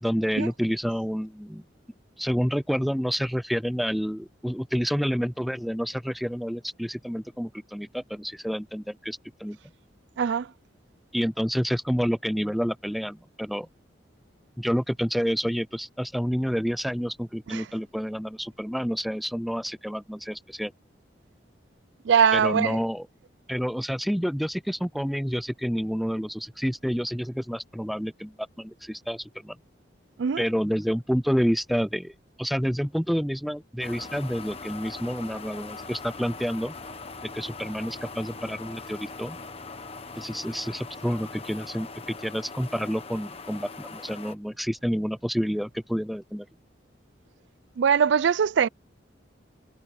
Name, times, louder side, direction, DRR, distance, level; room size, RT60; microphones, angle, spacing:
voice 1, 0.0-1.6 2.2-9.6 11.1-13.7 14.6-20.7 22.3-23.0 23.5-29.6 30.4-36.8 37.3-39.4 40.2-46.5, equal, ahead, 0.4 m, -29 dB
voice 2, 10.2-10.5 17.5-17.6 22.0-22.8 30.2-30.4 47.8-48.7, right 7 dB, 70° right, 0.4 m, -22 dB
sound 1, 33.8-44.4, left 3 dB, 30° left, 1.1 m, -41 dB
head